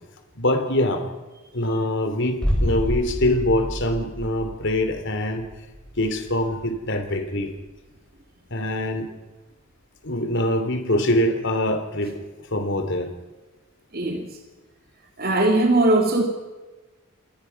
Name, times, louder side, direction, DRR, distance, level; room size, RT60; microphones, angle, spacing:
voice 1, 0.4-1.0 1.5-5.4 6.0-7.5 8.5-9.1 10.0-12.2 12.5-13.1, left 1 dB, 60° left, 7 dB, 3.2 m, -24 dB
sound 1, 2.4-8.1 8.4-8.5, equal, 5° left, 5.7 m, -30 dB
voice 2, 13.9-14.3 15.2-16.2, right 2 dB, 45° right, 3 dB, 2.6 m, -19 dB
28.5 x 20.0 x 5.9 m, 1.2 s
head